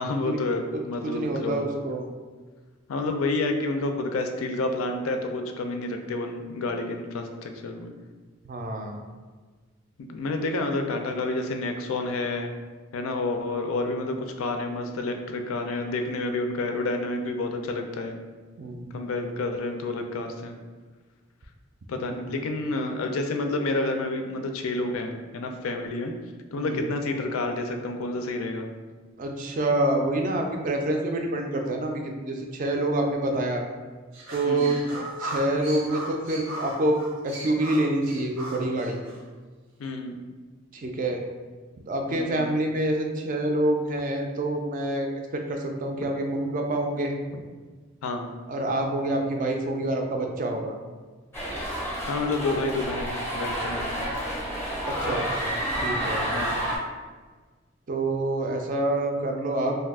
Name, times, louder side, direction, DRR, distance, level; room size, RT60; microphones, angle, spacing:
voice 1, 0.0-1.7 2.9-7.9 10.0-12.5 12.9-18.1 18.9-20.5 21.9-26.1 26.5-28.7 34.4-34.8 39.8-40.2 42.1-42.5 46.0-46.1 47.3-47.4 48.0-48.3 52.1-54.0 56.3-56.6, left 2 dB, 85° left, 5 dB, 0.4 m, -29 dB
voice 2, 1.0-2.1 8.4-9.0 18.6-19.0 22.0-22.4 26.6-26.8 29.2-31.9 32.2-33.6 34.3-34.8 35.2-37.0 37.2-39.0 40.7-41.2 41.9-47.1 48.5-50.8 54.9-56.3 57.9-59.8, right 1 dB, 40° right, 3 dB, 0.3 m, -27 dB
sound 1, 34.1-39.2, right 1 dB, 90° right, 0.8 m, -37 dB
sound 2, 51.3-56.8, equal, 10° left, 0.6 m, -29 dB
2.6 x 2.3 x 3.5 m, 1.4 s
head